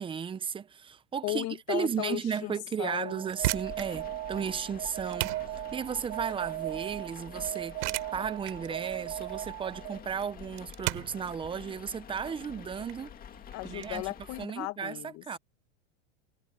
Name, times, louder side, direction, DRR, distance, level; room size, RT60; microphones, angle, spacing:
voice 1, 0.0-5.3 5.7-7.8 8.1-13.1 13.6-14.0 14.4-15.4, right 7 dB, 15° right, 0.6 m, -34 dB
voice 2, 1.2-3.2 13.5-15.2, left 20 dB, 45° left, 1.1 m, -36 dB
Alarm, 3.0-10.1, right 16 dB, 40° right, 3.3 m, -38 dB
sound 1, 3.1-13.9, right 20 dB, 70° right, 3.9 m, -38 dB
sound 2, 3.4-14.5, left 9 dB, 25° left, 2.1 m, -48 dB
supercardioid pair, 140°, 36 cm